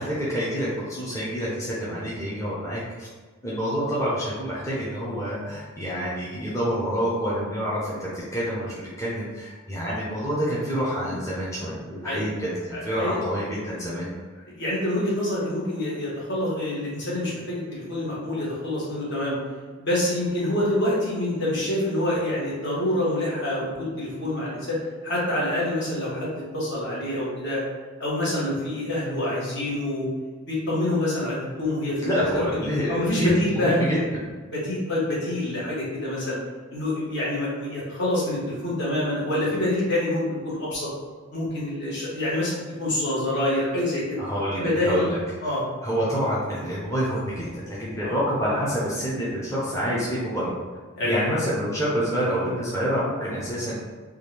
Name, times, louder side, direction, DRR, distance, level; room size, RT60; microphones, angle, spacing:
voice 1, 0.0-3.1 3.4-14.1 32.0-34.3 44.2-45.2 45.8-50.5 51.0-53.8, equal, 15° left, -8 dB, 0.6 m, -27 dB
voice 2, 12.7-13.2 14.5-19.4 19.8-27.6 28.0-30.1 30.5-32.4 32.9-33.8 34.5-36.4 36.7-40.9 41.3-44.2 44.5-45.0 45.4-45.6 48.0-48.2 51.0-51.2, left 1 dB, 55° left, -7 dB, 1.2 m, -26 dB
3.6 x 2.4 x 3.2 m, 1.4 s
head